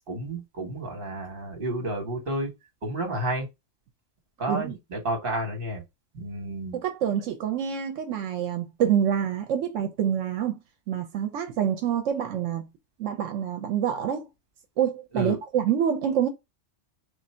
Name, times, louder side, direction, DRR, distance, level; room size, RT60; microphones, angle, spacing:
voice 1, 0.1-2.5 2.8-3.4 4.4-5.8 6.1-6.8 15.1-15.4, right 1 dB, 50° right, 1.5 m, -31 dB
voice 2, 6.7-10.6 10.9-12.7 13.0-14.2 14.8-16.3, right 9 dB, 85° right, 1.0 m, -26 dB
3.4 x 2.6 x 4.2 m
omnidirectional pair, 1.3 m